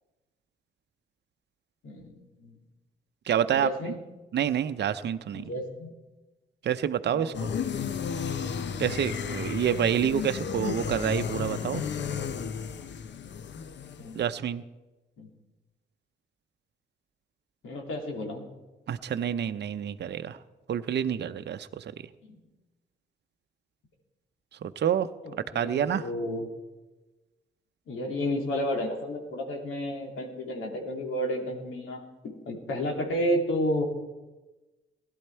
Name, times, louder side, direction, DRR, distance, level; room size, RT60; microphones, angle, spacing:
voice 1, 1.8-2.6 3.5-4.0 5.3-5.9 7.1-7.4 14.0-14.2 15.2-15.3 17.6-18.4 22.2-22.4 25.2-26.5 27.9-33.8, equal, 80° left, 1 dB, 2.7 m, -32 dB
voice 2, 3.3-3.9 4.3-5.5 6.6-7.3 8.8-11.8 14.1-14.6 18.9-20.4 20.7-21.8 24.6-25.1 25.5-26.0, right 9 dB, 60° right, 10 dB, 0.7 m, -28 dB
sound 1, 7.3-14.2, left 7 dB, 60° left, 0.8 m, -33 dB
16.5 x 11.5 x 4.5 m, 1.1 s
supercardioid pair, 60°, 20 cm